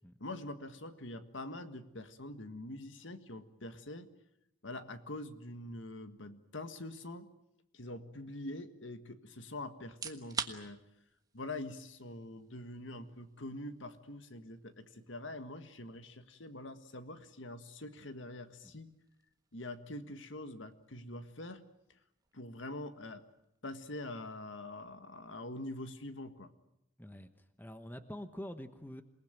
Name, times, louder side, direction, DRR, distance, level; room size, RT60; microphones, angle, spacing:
voice 1, 0.2-4.1 4.6-7.3 7.7-10.8 11.3-18.9 19.5-21.6 22.3-23.2 23.6-26.5, left 1 dB, 70° left, 10 dB, 1.7 m, -45 dB
sound 1, 9.8-24.7, right 5 dB, 20° right, 1.4 m, -51 dB
voice 2, 27.0-27.3 27.6-29.0, equal, 10° left, 9 dB, 1.1 m, -45 dB
27.5 x 19.5 x 9.1 m, 0.82 s
head